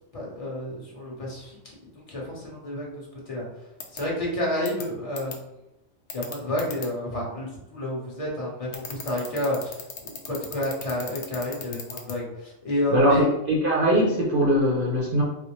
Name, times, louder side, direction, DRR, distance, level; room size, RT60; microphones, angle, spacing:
voice 1, 0.1-3.4 3.9-5.3 6.1-13.2, left 1 dB, 30° left, -4 dB, 0.9 m, -30 dB
sound 1, 3.8-4.0 4.7-4.8 5.2-5.3 6.1-6.9 8.7-12.1, left 6 dB, 65° left, 0.8 m, -35 dB
voice 2, 12.9-15.2, equal, 50° right, -4 dB, 0.7 m, -21 dB
4.2 x 2.0 x 3.0 m, 0.88 s
omnidirectional pair, 1.3 m